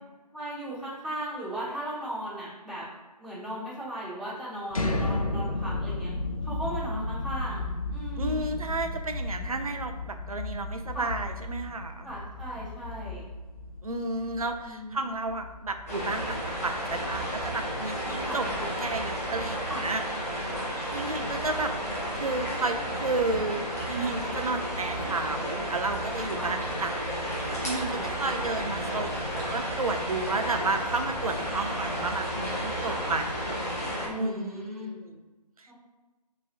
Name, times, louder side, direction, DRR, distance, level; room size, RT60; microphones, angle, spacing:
voice 1, 0.3-2.8 3.2-6.1 6.4-8.4 10.9-11.1 12.0-13.2 14.6-15.0 18.2-18.4 19.7-19.9 20.5-20.7 26.4-26.5 27.8-28.3 32.8-33.0 34.0-34.9 35.7-35.8, right 1 dB, ahead, -20 dB, 1.1 m, -37 dB
sound 1, 4.7-16.5, left 2 dB, 55° left, 0.6 m, -33 dB
voice 2, 8.2-12.1 13.8-18.5 18.8-20.0 20.4-20.5 20.9-21.7 22.1-33.5 34.1-35.2 35.6-35.7, right 3 dB, 60° right, 6 dB, 0.6 m, -32 dB
sound 2, 15.9-34.1, equal, 20° left, 0.9 m, -32 dB
5.6 x 3.2 x 2.8 m, 1.2 s
figure-of-eight pair, 175°, 21 cm